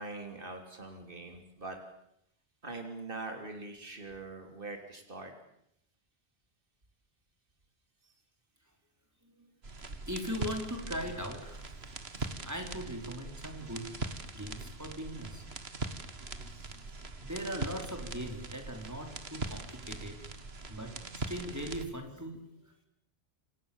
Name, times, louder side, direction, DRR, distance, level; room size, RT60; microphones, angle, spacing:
voice 1, 0.0-1.8 2.6-5.3 8.0-8.1 16.5-17.0, right 3 dB, 60° right, 5 dB, 3.6 m, -43 dB
sound 1, 9.6-21.9, right 3 dB, 90° right, 2.2 m, -41 dB
voice 2, 10.1-11.7 12.1-14.0 14.3-15.4 16.7-16.9 17.2-20.2 20.7-22.5, equal, 15° right, 4 dB, 4.7 m, -40 dB
30.0 x 26.0 x 7.3 m, 0.77 s
omnidirectional pair, 1.0 m